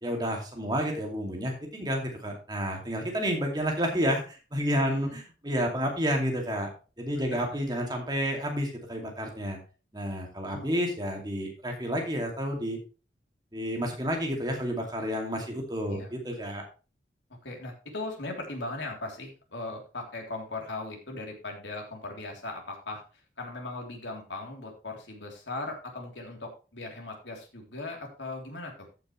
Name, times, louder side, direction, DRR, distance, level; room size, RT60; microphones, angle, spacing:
voice 1, 0.0-6.7 7.0-9.6 9.9-12.8 13.5-16.6, equal, 20° right, 1 dB, 2.5 m, -30 dB
voice 2, 4.8-5.2 7.3-7.4 10.5-10.7 15.9-16.1 17.4-23.0 23.4-28.9, left 2 dB, 85° left, 1 dB, 3.4 m, -38 dB
14.0 x 6.8 x 3.2 m, 0.33 s
head